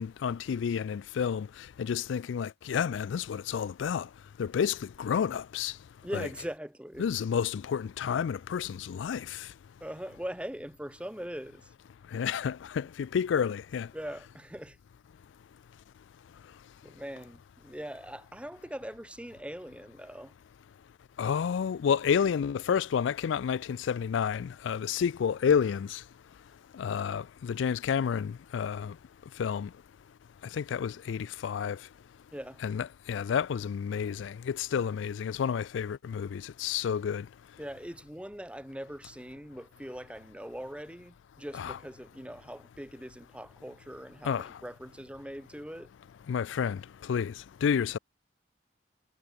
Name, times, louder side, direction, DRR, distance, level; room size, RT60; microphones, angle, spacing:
voice 1, 0.0-1.5 1.8-4.1 4.4-5.7 6.1-6.3 7.0-9.5 12.1-13.9 21.2-26.0 26.7-28.9 29.4-29.7 30.5-31.8 32.6-37.3 41.5-41.8 44.2-44.5 46.3-47.3 47.6-48.0, left 7 dB, 80° left, 0.3 m, -30 dB
voice 2, 6.0-7.0 9.8-11.7 13.9-14.8 16.8-20.3 32.3-32.6 37.6-45.9, equal, 5° right, 1.1 m, -41 dB
head